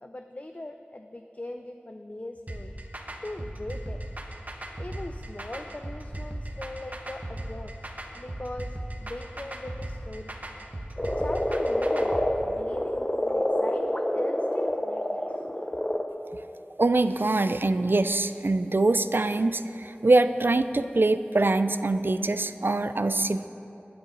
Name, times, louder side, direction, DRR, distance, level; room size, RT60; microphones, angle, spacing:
voice 1, 0.0-2.7 3.2-4.0 4.8-7.7 8.2-10.3 10.7-10.8 11.2-15.4, left 1 dB, 40° left, 5 dB, 0.5 m, -40 dB
sound 1, 2.5-12.3, right 1 dB, 40° right, 1.2 m, -37 dB
Frog, 11.0-16.1, left 1 dB, 20° left, 0.9 m, -27 dB
voice 2, 16.8-23.5, right 2 dB, 60° right, 11 dB, 0.4 m, -24 dB
19.5 x 9.6 x 4.0 m, 2.9 s
wide cardioid pair, 50°, 4 cm